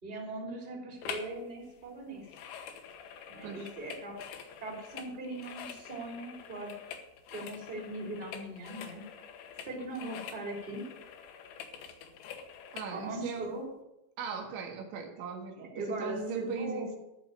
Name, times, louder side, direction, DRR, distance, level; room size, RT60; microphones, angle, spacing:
voice 1, 0.0-2.3 3.3-6.7 7.3-9.0 9.6-10.8 12.9-13.6 15.6-16.9, right 2 dB, 10° right, -2 dB, 2.6 m, -40 dB
sound 1, 1.0-1.4 1.6-12.9 13.5-13.6, left 8 dB, 75° left, 3.2 m, -46 dB
voice 2, 12.7-13.5 14.2-17.0, right 5 dB, 75° right, 3 dB, 3.8 m, -39 dB
14.0 x 6.4 x 9.1 m, 0.91 s
omnidirectional pair, 5.4 m